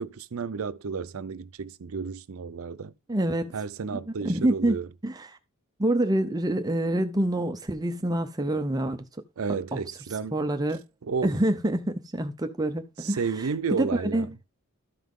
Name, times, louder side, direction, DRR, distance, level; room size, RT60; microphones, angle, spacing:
voice 1, 0.0-2.9 3.5-4.9 9.4-10.4 11.0-11.4 13.0-14.3, right 5 dB, 70° right, 0.5 m, -32 dB
voice 2, 3.1-3.6 4.2-4.8 5.0-5.4 5.8-9.0 9.7-9.8 10.3-10.8 11.2-13.5 13.8-14.3, right 1 dB, 15° right, 0.5 m, -26 dB
13.0 x 5.7 x 3.7 m
head